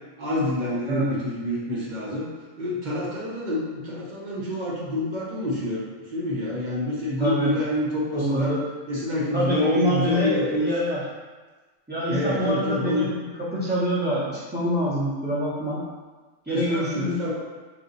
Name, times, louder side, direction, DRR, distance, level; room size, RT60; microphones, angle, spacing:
voice 1, 0.2-2.3 2.6-8.5 8.9-10.7 12.1-13.1 16.5-17.3, left 1 dB, 40° right, -7 dB, 0.9 m, -27 dB
voice 2, 7.2-7.5 8.1-8.6 9.3-11.0 11.9-15.9 16.5-17.2, equal, 10° right, -9 dB, 1.0 m, -25 dB
3.3 x 2.6 x 3.9 m, 1.3 s
omnidirectional pair, 1.3 m